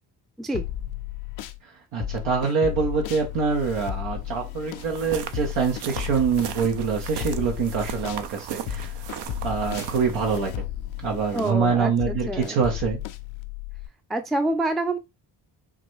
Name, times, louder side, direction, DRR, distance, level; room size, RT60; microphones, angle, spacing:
sound 1, 0.5-1.6 2.0-8.3 8.7-13.9, left 12 dB, 75° left, 0.5 m, -34 dB
voice 1, 1.9-8.9 9.4-10.7 11.0-13.0, right 6 dB, 75° right, 0.9 m, -25 dB
sound 2, 4.8-10.4, right 8 dB, 60° right, 0.6 m, -37 dB
voice 2, 11.3-12.6 14.1-15.0, right 2 dB, ahead, 0.4 m, -27 dB
3.7 x 2.3 x 3.0 m
supercardioid pair, 45°, 47 cm